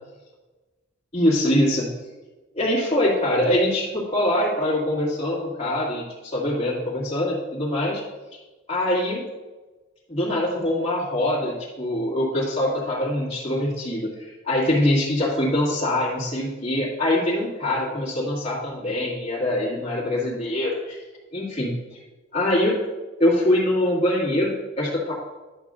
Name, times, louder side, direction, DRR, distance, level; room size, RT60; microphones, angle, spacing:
voice 1, 1.1-1.9 2.5-8.0 8.7-9.2 10.1-21.0 21.3-22.0 22.3-22.8 23.2-25.1, left 1 dB, 30° left, -7 dB, 2.1 m, -23 dB
10.5 x 7.1 x 2.5 m, 1.2 s
head